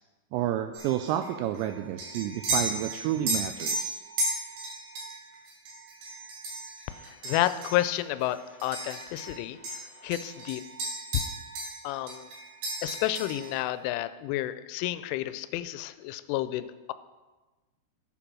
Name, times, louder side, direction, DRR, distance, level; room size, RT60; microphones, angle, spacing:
voice 1, 0.3-4.0, right 11 dB, 85° right, 8 dB, 2.6 m, -30 dB
sound 1, 0.7-9.4 9.6-11.8 12.1-13.6, right 1 dB, 65° right, 4.9 m, -35 dB
voice 2, 7.0-10.6 11.8-12.3 12.8-16.9, left 14 dB, 85° left, 13 dB, 3.0 m, -31 dB
9.9 x 8.4 x 6.1 m, 1.2 s
omnidirectional pair, 5.6 m